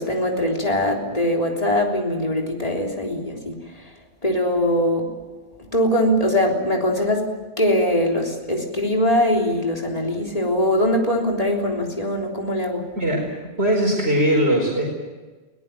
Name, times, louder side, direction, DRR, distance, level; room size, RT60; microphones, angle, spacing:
voice 1, 0.0-3.6 4.2-5.1 5.7-7.3 7.6-12.9, left 1 dB, 35° left, 1 dB, 3.7 m, -21 dB
voice 2, 12.9-13.3 13.6-14.8, right 1 dB, 70° right, -1 dB, 4.9 m, -20 dB
22.5 x 18.0 x 9.3 m, 1.3 s
omnidirectional pair, 1.1 m